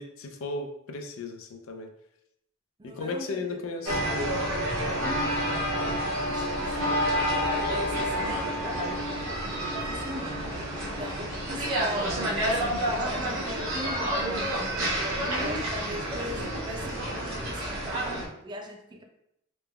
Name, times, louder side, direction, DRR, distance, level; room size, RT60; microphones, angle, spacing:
voice 1, 0.0-1.9 3.0-4.0, left 3 dB, 80° left, 4 dB, 0.4 m, -35 dB
voice 2, 2.8-3.6 4.8-19.0, equal, 20° right, 3 dB, 0.3 m, -40 dB
sound 1, 3.9-18.3, equal, 75° right, 0.6 m, -29 dB
3.1 x 2.0 x 2.3 m, 0.78 s
head